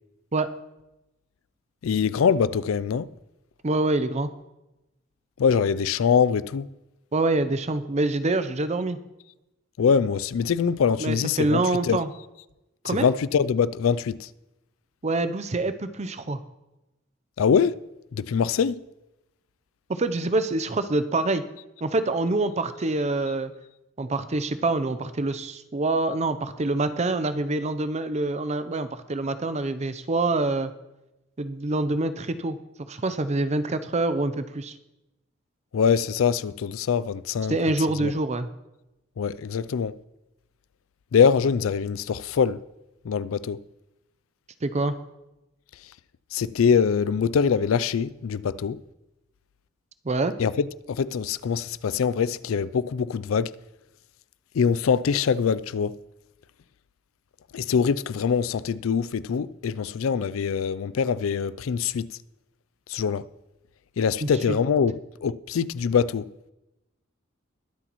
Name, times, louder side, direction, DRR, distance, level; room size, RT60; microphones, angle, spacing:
voice 1, 1.8-3.1 5.4-6.7 9.8-12.0 12.8-14.3 17.4-17.8 18.1-18.8 35.7-37.6 38.0-38.1 39.2-39.9 41.1-42.6 43.0-43.6 46.3-48.8 50.4-53.5 54.5-56.0 57.5-62.1 62.9-63.3 64.0-66.3, left 6 dB, 90° left, 0.4 m, -23 dB
voice 2, 3.6-4.3 7.1-9.0 11.0-12.1 12.8-13.1 15.0-16.4 19.9-21.4 21.8-23.5 24.0-30.7 31.4-32.6 32.9-34.7 37.5-38.5 44.6-44.9 50.0-50.3 64.2-64.6, right 2 dB, 35° right, 0.6 m, -26 dB
21.5 x 8.0 x 3.1 m
head